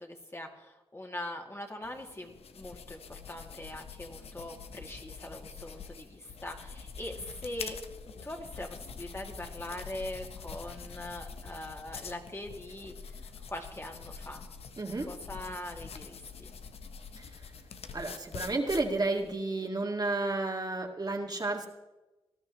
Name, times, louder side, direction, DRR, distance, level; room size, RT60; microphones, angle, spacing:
voice 1, 0.0-7.8 8.1-13.2 13.5-14.4 15.1-16.5, left 1 dB, 25° left, 1 dB, 2.4 m, -42 dB
sound 1, 1.8-19.3, left 5 dB, 90° left, 0.8 m, -45 dB
voice 2, 14.8-15.1 17.2-17.5 17.9-21.7, right 2 dB, 45° right, 1 dB, 2.1 m, -32 dB
19.0 x 13.0 x 3.1 m, 1.1 s
cardioid pair, 50°, 10 cm